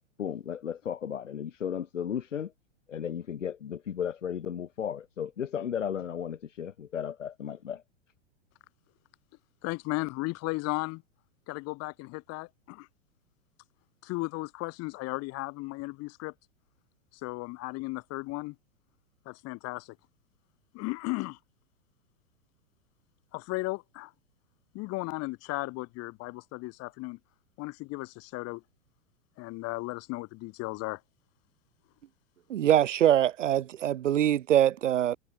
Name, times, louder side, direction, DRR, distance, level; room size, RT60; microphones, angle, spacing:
voice 1, 0.0-2.5 2.9-7.8, left 8 dB, 85° left, 2.2 m, -35 dB
voice 2, 9.6-11.0 11.5-12.9 14.0-16.3 17.2-18.5 19.3-19.9 20.7-21.4 23.3-24.1 24.7-27.2 27.6-28.6 29.4-31.0, left 23 dB, 40° left, 2.8 m, -35 dB
voice 3, 32.5-35.2, right 11 dB, 80° right, 1.1 m, -23 dB
hypercardioid pair, 110°, 37 cm